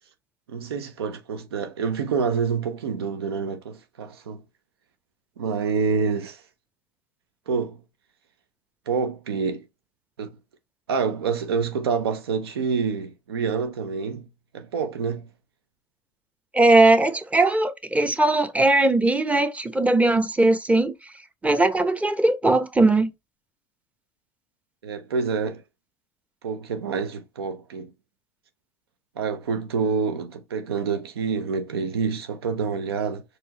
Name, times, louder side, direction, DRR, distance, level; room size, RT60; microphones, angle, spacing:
voice 1, 0.5-4.4 5.4-6.4 7.5-7.8 8.9-9.7 10.2-10.4 10.9-14.3 14.5-15.3 24.8-25.6 26.4-27.9 29.2-33.2, right 5 dB, 85° right, 0.7 m, -27 dB
voice 2, 16.5-20.9 21.4-23.1, right 2 dB, 10° right, 0.8 m, -19 dB
4.5 x 3.1 x 2.9 m
hypercardioid pair, 80°, 13 cm